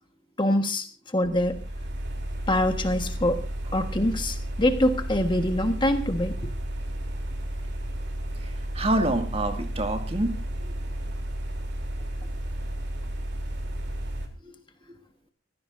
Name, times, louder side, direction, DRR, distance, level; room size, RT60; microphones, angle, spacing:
voice 1, 0.4-1.6 2.5-3.4 3.7-6.5, left 1 dB, 25° left, 6 dB, 1.4 m, -24 dB
sound 1, 1.2-14.3, right 1 dB, 60° right, 3.3 m, -32 dB
voice 2, 8.4-10.8 14.4-14.6 14.9-15.0, right 1 dB, 30° right, 5 dB, 2.2 m, -28 dB
25.5 x 15.5 x 2.7 m, 0.32 s
head